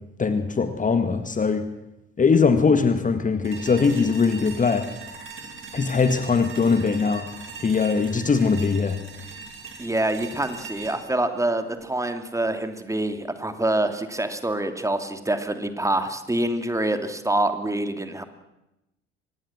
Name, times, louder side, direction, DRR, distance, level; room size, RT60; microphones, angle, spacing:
voice 1, 0.2-1.7 2.2-4.9 5.7-7.3 7.6-9.0, left 5 dB, 25° left, 10 dB, 1.8 m, -21 dB
sound 1, 3.4-12.5, right 5 dB, 40° right, 5.2 m, -41 dB
voice 2, 9.8-18.2, right 1 dB, 10° right, 8 dB, 2.7 m, -26 dB
25.0 x 20.0 x 7.4 m, 0.93 s
figure-of-eight pair, 55°, 31 cm